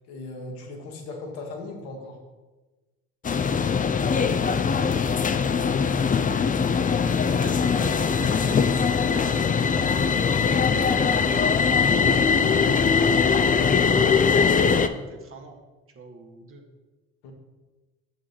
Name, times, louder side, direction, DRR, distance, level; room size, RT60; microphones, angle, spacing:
voice 1, 0.1-2.2 10.3-10.7 17.2-17.3, left 2 dB, 80° left, 1 dB, 1.6 m, -38 dB
sound 1, 3.2-14.9, left 6 dB, 25° left, 0.6 m, -21 dB
voice 2, 4.3-5.4 7.4-9.4 10.5-13.8 14.7-15.6 15.9-16.6, right 3 dB, 45° right, 2 dB, 1.7 m, -44 dB
6.5 x 6.4 x 5.9 m, 1.2 s
hypercardioid pair, 60°, 31 cm